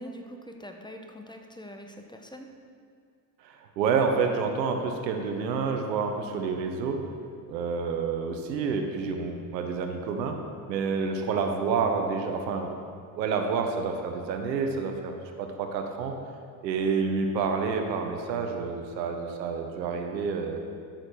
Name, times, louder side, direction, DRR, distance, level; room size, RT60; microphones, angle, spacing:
voice 1, 0.0-2.5, equal, 10° left, 4 dB, 1.2 m, -43 dB
voice 2, 3.4-7.0 7.5-10.3 10.7-12.7 13.1-16.1 16.6-20.6, right 5 dB, 85° right, 4 dB, 1.0 m, -28 dB
13.0 x 6.5 x 4.8 m, 2.2 s
hypercardioid pair, 55°, 50 cm